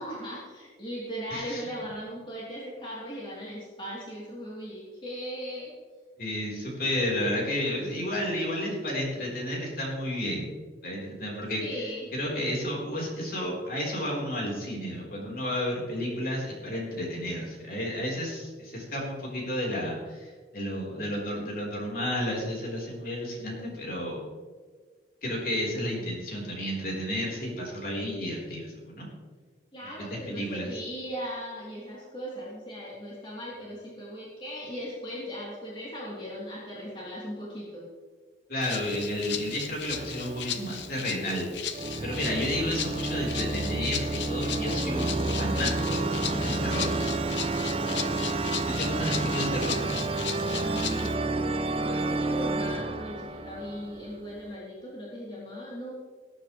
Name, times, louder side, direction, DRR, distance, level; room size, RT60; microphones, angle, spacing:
voice 1, 0.0-5.7 11.6-12.1 29.7-37.8 50.5-55.9, equal, 30° left, -7 dB, 3.2 m, -38 dB
voice 2, 1.3-1.6 6.2-10.5 10.8-24.2 25.2-29.1 30.0-30.7 38.5-41.5 42.0-47.0 48.6-49.8, left 1 dB, 50° left, -3 dB, 4.1 m, -32 dB
Rattle (instrument), 38.6-51.1, left 9 dB, 80° left, 0.9 m, -37 dB
sound 1, 39.9-41.1 41.7-54.4, right 2 dB, 30° right, 0.7 m, -30 dB
19.0 x 9.9 x 3.2 m, 1.5 s
head